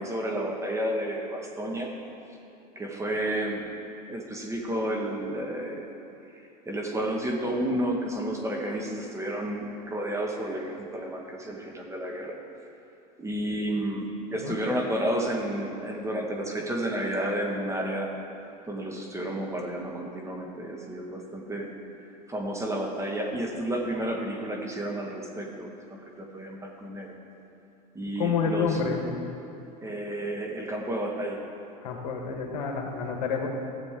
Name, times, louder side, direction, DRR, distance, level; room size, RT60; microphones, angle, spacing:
voice 1, 0.0-1.9 2.7-3.7 4.1-5.9 6.6-12.4 13.2-18.1 18.7-21.7 22.3-27.1 27.9-28.8 29.8-31.4, right 1 dB, 15° right, 0 dB, 1.6 m, -31 dB
voice 2, 28.2-29.1 31.8-33.5, left 6 dB, 75° left, 2 dB, 1.5 m, -28 dB
15.0 x 7.6 x 3.7 m, 2.9 s
hypercardioid pair, 100°, 21 cm